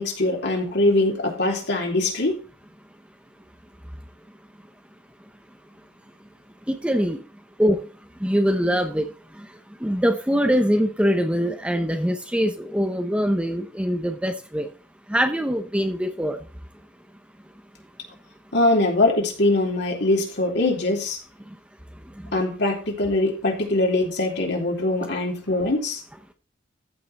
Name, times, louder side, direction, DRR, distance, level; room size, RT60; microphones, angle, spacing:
voice 1, 0.0-2.4 18.5-21.2 22.3-26.0, left 2 dB, 65° left, 1 dB, 3.1 m, -22 dB
voice 2, 6.7-7.2 7.6-7.8 8.2-9.1 9.8-14.7 15.1-16.4 22.3-22.4, equal, 5° right, 7 dB, 0.9 m, -23 dB
14.5 x 5.7 x 4.2 m, 0.34 s
head